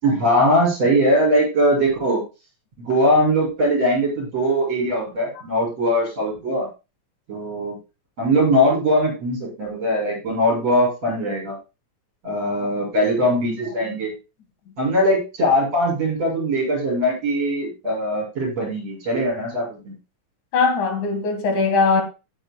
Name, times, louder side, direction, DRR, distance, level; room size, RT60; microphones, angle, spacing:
voice 1, 0.0-2.2 2.8-6.7 7.3-7.8 8.2-11.6 12.2-14.1 14.8-19.9, equal, 55° right, 8.0 m, -21 dB
voice 2, 12.4-12.7 13.9-14.0 20.5-22.0, left 4 dB, 80° left, 3.4 m, -21 dB
16.5 x 8.7 x 2.3 m
omnidirectional pair, 3.4 m